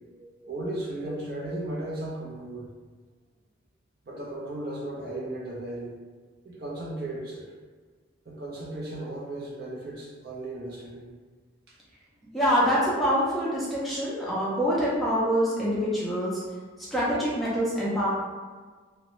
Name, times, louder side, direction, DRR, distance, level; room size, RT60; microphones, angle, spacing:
voice 1, 0.1-2.7 4.0-5.9 6.4-7.5 8.2-11.1 11.7-11.8, right 1 dB, 50° right, -4 dB, 0.6 m, -36 dB
voice 2, 12.2-16.4 16.9-18.1, equal, ahead, -9 dB, 0.5 m, -25 dB
2.6 x 2.1 x 3.0 m, 1.5 s
head